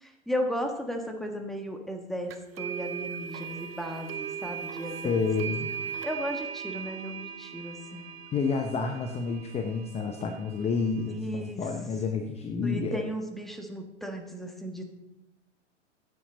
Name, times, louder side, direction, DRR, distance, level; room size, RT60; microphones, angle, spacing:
voice 1, 0.0-5.2 6.0-8.0 11.2-11.6 12.6-14.8, equal, ahead, 3 dB, 1.5 m, -35 dB
sound 1, 2.3-11.2, right 7 dB, 55° right, 1.2 m, -39 dB
voice 2, 5.0-5.7 7.9-13.0, left 4 dB, 15° left, 5 dB, 0.9 m, -30 dB
15.0 x 8.9 x 4.0 m, 0.90 s
figure-of-eight pair, 100°, 36 cm